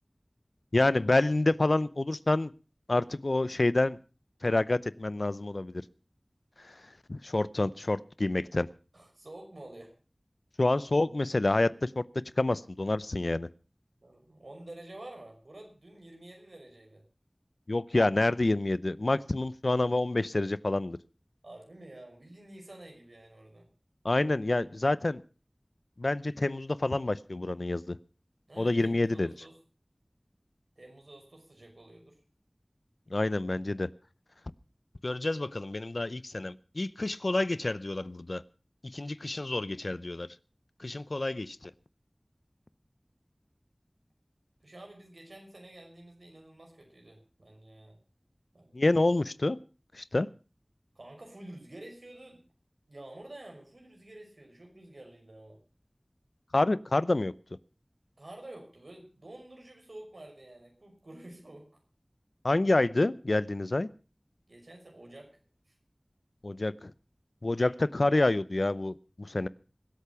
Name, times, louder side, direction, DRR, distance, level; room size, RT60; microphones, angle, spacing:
voice 1, 0.7-2.5 2.9-4.0 4.4-5.8 6.7-6.8 7.1-8.7 10.6-12.0 12.4-13.5 17.7-21.0 24.0-25.2 26.0-28.0 28.6-29.3 33.1-33.9 35.0-38.4 38.8-40.3 40.8-41.7 48.7-49.6 49.9-50.3 56.5-57.3 62.4-63.9 66.4-66.9 67.4-69.5, left 2 dB, 75° left, 17 dB, 0.7 m, -28 dB
voice 2, 8.9-9.9 14.0-17.0 21.4-23.7 28.5-29.6 30.8-32.2 44.6-48.0 48.5-48.9 50.9-52.4 52.9-55.6 58.2-61.7 64.5-65.4 65.7-65.8, right 1 dB, 85° right, 2 dB, 5.9 m, -49 dB
24.0 x 8.5 x 5.8 m, 0.36 s
wide cardioid pair, 40°, 0 cm